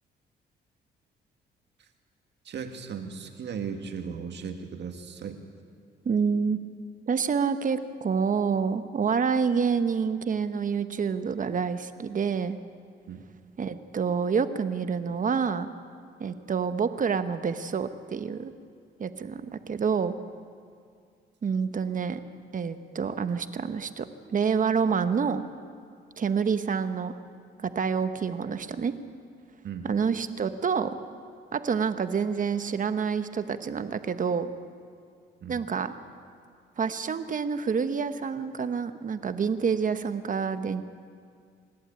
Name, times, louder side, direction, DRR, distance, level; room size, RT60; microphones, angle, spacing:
voice 1, 2.5-5.4 13.1-13.2 29.6-29.9 35.4-35.6, right 6 dB, 60° right, 5 dB, 2.0 m, -37 dB
voice 2, 6.0-6.6 7.1-12.6 13.6-15.7 16.2-18.5 19.0-20.1 21.4-22.2 22.5-25.4 26.2-27.1 27.6-28.9 29.8-31.0 31.5-34.5 35.5-35.9 36.8-40.8, right 6 dB, 40° right, 10 dB, 1.1 m, -27 dB
26.5 x 12.0 x 8.9 m, 2.2 s
cardioid pair, 90°, 20 cm